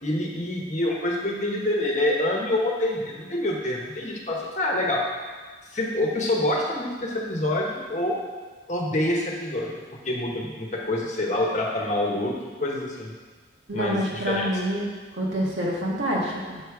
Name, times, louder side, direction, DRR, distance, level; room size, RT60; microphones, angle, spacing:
voice 1, 0.0-5.0 5.7-8.2 8.7-9.7 10.0-12.3 12.6-13.1 13.7-14.5, left 1 dB, 40° left, -1 dB, 1.1 m, -26 dB
voice 2, 13.7-14.8 15.1-16.6, equal, 85° right, -3 dB, 1.6 m, -27 dB
7.1 x 5.1 x 4.7 m, 1.4 s
head